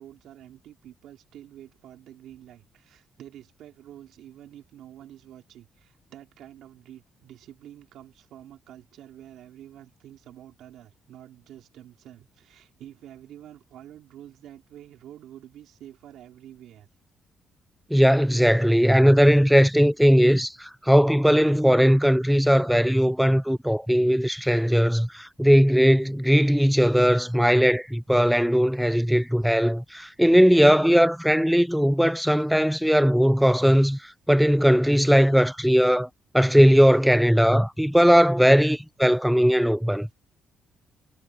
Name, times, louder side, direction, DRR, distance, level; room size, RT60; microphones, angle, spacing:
voice 1, 0.0-16.9, right 11 dB, 80° right, 3.0 m, -48 dB
voice 2, 17.9-36.1 36.3-40.1, equal, ahead, 0.4 m, -19 dB
cardioid pair, 90°, 0 cm